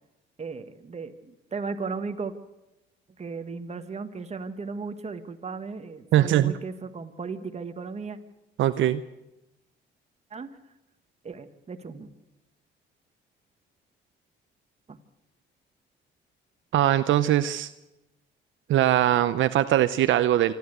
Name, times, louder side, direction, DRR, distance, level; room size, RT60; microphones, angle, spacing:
voice 1, 0.4-2.3 3.2-8.2 10.3-10.6 11.2-12.1 14.9-15.0, right 4 dB, 35° right, 8 dB, 1.7 m, -36 dB
voice 2, 6.1-6.6 8.6-9.0 16.7-17.7 18.7-20.5, right 12 dB, 75° right, 13 dB, 0.7 m, -21 dB
26.5 x 12.0 x 8.0 m, 0.96 s
cardioid pair, 90°, 20 cm